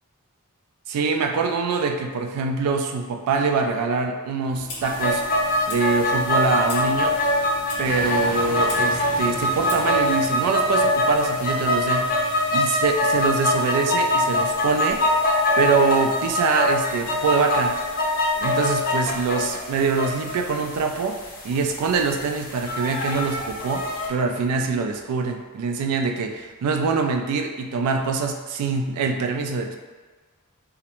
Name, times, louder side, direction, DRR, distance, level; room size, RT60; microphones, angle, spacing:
voice 1, 0.9-5.2 5.7-7.2 7.8-12.1 12.5-15.0 15.6-17.8 18.4-21.2 21.4-29.8, right 4 dB, 80° right, 9 dB, 0.3 m, -24 dB
Clock, 4.5-10.1, left 2 dB, 85° left, 0.7 m, -40 dB
sound 1, 4.8-24.1, left 1 dB, 40° left, 0.4 m, -23 dB
sound 2, 7.8-19.8 20.1-25.0 25.6-25.7, right 1 dB, 40° right, 0.8 m, -40 dB
2.4 x 2.1 x 2.9 m, 1.3 s
head